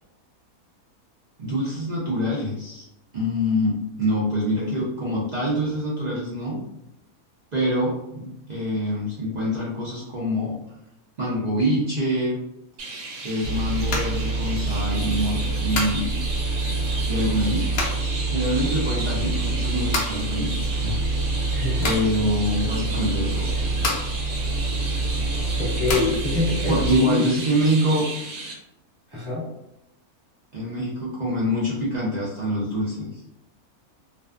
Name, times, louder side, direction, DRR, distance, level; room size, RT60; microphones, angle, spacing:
voice 1, 1.4-2.8 3.1-6.6 7.5-10.6 11.2-12.4 13.2-16.1 17.1-17.7 18.3-20.9 21.8-23.5 26.7-28.1 30.5-33.2, equal, 55° right, -8 dB, 0.5 m, -25 dB
Chirp tweet, 12.8-28.5, right 2 dB, 75° right, 1.1 m, -35 dB
sound 1, 13.4-27.0, right 2 dB, 65° left, 0.6 m, -26 dB
voice 2, 21.5-21.9 25.6-27.2 29.1-29.5, left 2 dB, 15° right, -8 dB, 1.1 m, -25 dB
2.4 x 2.3 x 2.4 m, 0.83 s
omnidirectional pair, 1.5 m